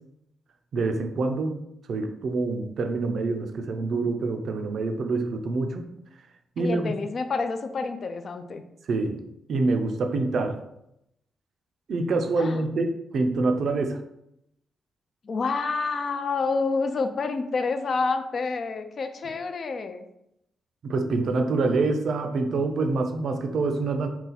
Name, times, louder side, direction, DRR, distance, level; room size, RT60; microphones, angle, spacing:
voice 1, 0.7-1.6 1.9-5.9 6.6-6.9 8.9-9.2 9.5-10.6 11.9-14.0 20.8-24.1, right 3 dB, 60° right, 6 dB, 0.4 m, -26 dB
voice 2, 6.6-8.6 12.3-12.6 15.2-20.1, left 4 dB, 45° left, 7 dB, 0.4 m, -28 dB
4.0 x 2.3 x 4.0 m, 0.80 s
wide cardioid pair, 145°, 0 cm